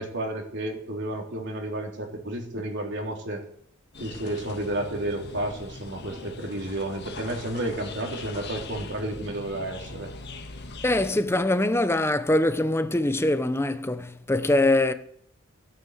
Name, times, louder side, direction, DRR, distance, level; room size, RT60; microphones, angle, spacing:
voice 1, 0.0-3.4 4.0-10.1, right 1 dB, 60° right, 3.2 m, -31 dB
sound 1, 3.9-11.2, left 3 dB, 55° left, 1.8 m, -41 dB
voice 2, 10.8-14.9, left 1 dB, 10° left, 0.8 m, -23 dB
17.0 x 9.3 x 8.0 m
head